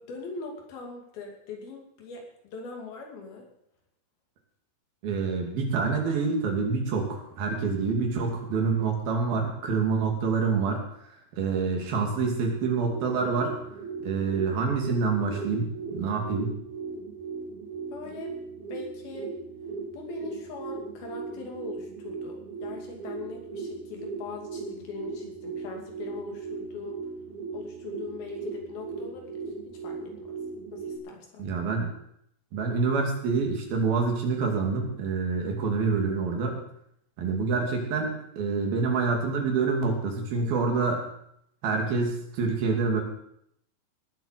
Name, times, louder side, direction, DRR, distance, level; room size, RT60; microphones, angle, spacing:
voice 1, 0.0-3.5 17.9-18.3 18.7-19.3 19.9-27.1 27.5-29.4 29.8-30.4 30.7-31.5 40.4-40.5, left 4 dB, 85° left, 1 dB, 4.5 m, -41 dB
voice 2, 5.0-10.8 11.3-13.5 14.0-16.5 31.4-31.9 32.5-36.6 37.2-41.0 41.6-43.0, right 4 dB, 80° right, 1 dB, 4.5 m, -27 dB
sound 1, 12.6-31.0, right 4 dB, 60° right, 3.0 m, -38 dB
18.5 x 7.8 x 6.7 m, 0.73 s
omnidirectional pair, 4.2 m